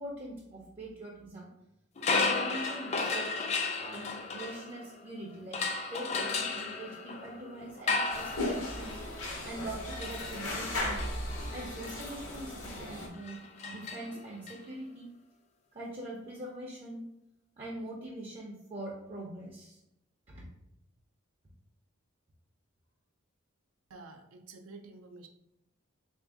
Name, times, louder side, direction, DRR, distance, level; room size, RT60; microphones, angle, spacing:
voice 1, 0.0-1.5 2.1-3.3 3.8-5.6 5.9-9.0 9.4-11.0 11.5-15.1 15.7-17.1 17.6-19.8 20.3-20.4, right 1 dB, 30° right, -3 dB, 0.5 m, -43 dB
sound 1, 2.0-5.1 5.5-14.5, left 3 dB, 30° left, 0.3 m, -35 dB
sound 2, 8.1-13.1, left 1 dB, 80° left, 1.0 m, -36 dB
voice 2, 23.9-25.3, right 3 dB, 90° right, 5 dB, 0.5 m, -49 dB
3.5 x 2.5 x 3.5 m, 0.84 s
head